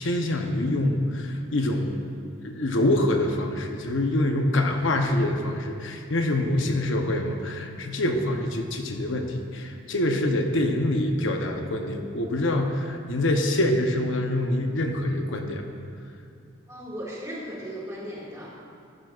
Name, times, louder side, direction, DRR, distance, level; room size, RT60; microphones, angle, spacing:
voice 1, 0.0-2.0 2.4-15.6, left 1 dB, 75° left, 4 dB, 0.8 m, -25 dB
voice 2, 16.7-18.5, equal, 15° right, -6 dB, 2.0 m, -36 dB
14.0 x 10.5 x 2.4 m, 2.4 s
head